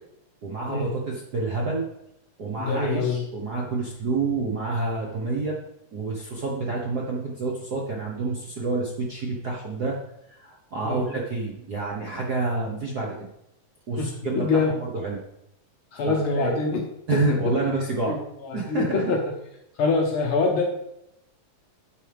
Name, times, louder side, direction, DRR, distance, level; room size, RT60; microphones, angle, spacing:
voice 1, 0.4-1.8 2.4-5.6 5.9-9.9 10.3-13.3 13.9-15.2 16.0-16.5 17.1-18.1 18.5-19.1, right 3 dB, 90° right, -2 dB, 0.8 m, -28 dB
voice 2, 2.6-3.2 10.8-11.1 14.0-14.1 14.4-14.7 15.9-16.8 17.1-17.2 18.1-19.2 19.8-20.6, left 4 dB, 70° left, -1 dB, 1.2 m, -24 dB
10.0 x 8.4 x 3.5 m, 0.80 s
omnidirectional pair, 3.8 m